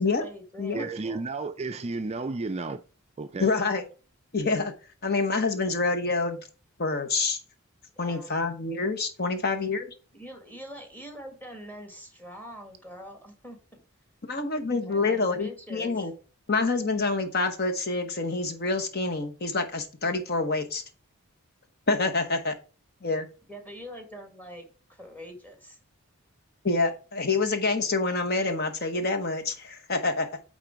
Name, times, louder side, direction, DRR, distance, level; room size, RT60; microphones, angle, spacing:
voice 1, 0.0-1.2 8.0-8.3 10.1-13.8 14.8-16.1 23.5-25.8, equal, 10° left, 1.7 m, -44 dB
voice 2, 0.7-2.8 3.2-3.5, right 3 dB, 30° right, 0.4 m, -32 dB
voice 3, 3.4-3.8 4.3-4.7 5.0-6.4 6.8-7.4 8.0-9.8 14.3-16.1 16.5-20.8 21.9-22.5 23.0-23.3 26.6-30.3, left 3 dB, 45° left, 0.9 m, -27 dB
9.0 x 3.8 x 4.6 m
head